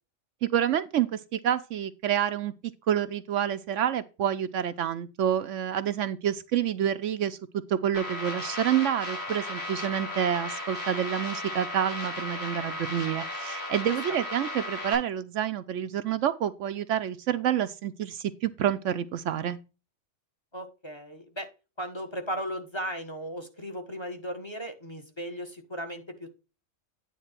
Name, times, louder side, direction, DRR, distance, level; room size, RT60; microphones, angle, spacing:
voice 1, 0.4-2.5 2.9-7.4 7.7-19.6, right 10 dB, 70° right, 0.9 m, -28 dB
sound 1, 7.9-14.9, left 1 dB, 50° left, 5.1 m, -35 dB
voice 2, 20.5-21.5 21.8-26.3, equal, 20° left, 1.4 m, -36 dB
9.4 x 3.7 x 5.7 m
omnidirectional pair, 1.4 m